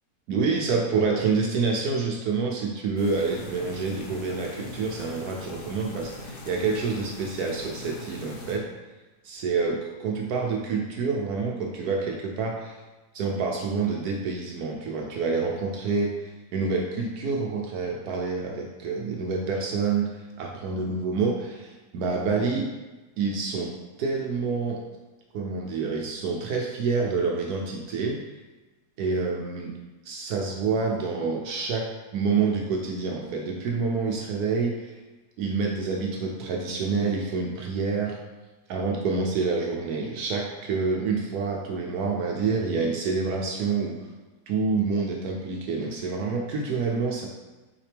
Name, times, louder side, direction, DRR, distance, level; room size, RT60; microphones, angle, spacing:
voice 1, 0.3-8.7 9.2-12.8 13.1-22.7 23.2-23.7 24.0-24.8 25.3-28.2 29.0-29.7 30.0-35.0 35.4-38.2 38.7-44.1 44.5-47.3, right 4 dB, 75° right, 0 dB, 1.1 m, -27 dB
sound 1, 3.0-8.6, left 2 dB, 45° left, 0.8 m, -41 dB
5.7 x 4.9 x 3.4 m, 1.2 s
omnidirectional pair, 1.7 m